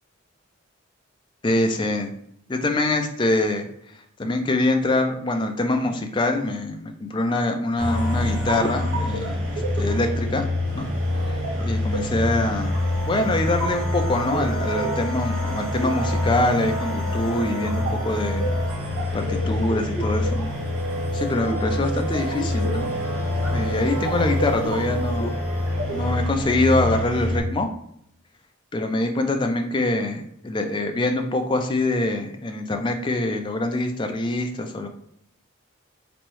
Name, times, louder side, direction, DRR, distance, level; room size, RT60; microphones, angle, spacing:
voice 1, 1.4-2.1 2.5-3.7 4.2-10.4 10.7-10.9 11.6-12.7 13.1-18.5 19.1-20.5 21.1-22.9 23.5-25.3 25.9-27.7 28.7-34.9, left 2 dB, 20° left, 4 dB, 0.4 m, -24 dB
sound 1, 7.8-27.4, left 1 dB, 80° right, 1.2 m, -26 dB
3.5 x 3.1 x 3.0 m, 0.72 s
head